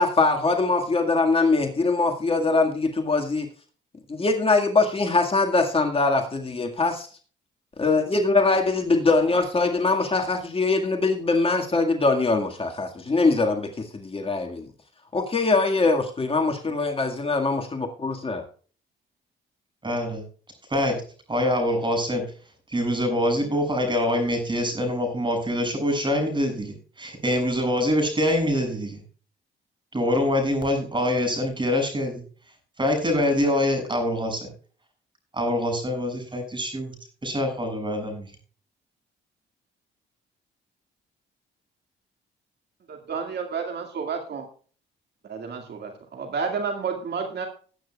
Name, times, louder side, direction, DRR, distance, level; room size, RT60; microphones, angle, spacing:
voice 1, 0.0-3.5 4.1-7.1 7.8-14.7 15.1-18.4, left 3 dB, 30° left, 3 dB, 1.9 m, -22 dB
voice 2, 19.8-20.2 20.7-21.0 21.3-22.3 22.7-29.0 29.9-32.2 32.8-34.5 35.3-36.9 37.2-38.3, left 1 dB, 25° right, 5 dB, 7.1 m, -24 dB
voice 3, 42.9-44.5 45.3-47.5, right 5 dB, 55° right, 4 dB, 2.1 m, -30 dB
20.0 x 9.1 x 2.4 m, 0.40 s
cardioid pair, 90°, 20 cm